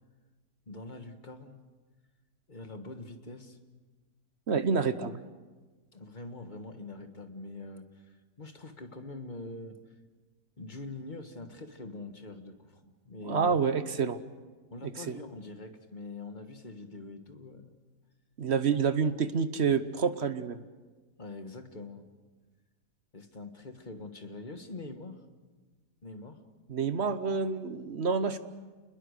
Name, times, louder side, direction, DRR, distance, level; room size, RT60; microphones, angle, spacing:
voice 1, 0.7-1.7 2.5-3.6 5.9-9.8 10.6-13.6 14.7-17.7 21.2-22.1 23.1-25.2 26.0-26.4, left 2 dB, 30° left, 7 dB, 1.6 m, -44 dB
voice 2, 4.5-5.1 13.3-14.2 14.8-15.2 18.4-20.6 26.7-28.4, right 5 dB, 45° right, 11 dB, 1.0 m, -28 dB
29.0 x 21.5 x 6.6 m, 1.3 s
omnidirectional pair, 1.8 m